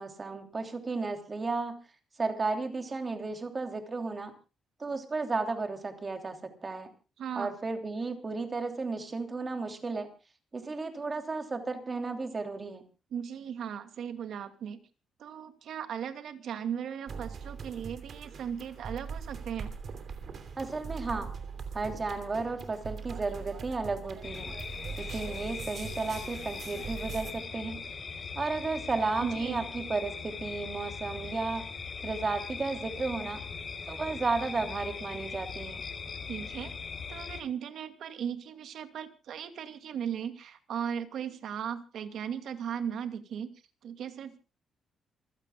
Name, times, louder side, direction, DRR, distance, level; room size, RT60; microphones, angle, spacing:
voice 1, 0.0-1.7 2.2-4.3 4.8-6.9 7.4-10.1 10.5-12.8 20.6-21.3 21.7-24.5 25.0-27.9 28.3-31.7 32.0-33.4 33.9-35.8, right 3 dB, 25° right, 6 dB, 3.0 m, -33 dB
voice 2, 7.2-7.5 13.1-14.8 15.2-19.7 29.2-29.6 36.3-36.7 37.1-43.5 43.8-44.4, right 8 dB, 60° right, 8 dB, 2.3 m, -37 dB
sound 1, 17.1-27.3, right 5 dB, 40° right, 3.1 m, -41 dB
sound 2, 24.2-37.4, left 5 dB, 35° left, 4.4 m, -40 dB
27.5 x 16.0 x 2.3 m, 0.32 s
cardioid pair, 165°, 0 cm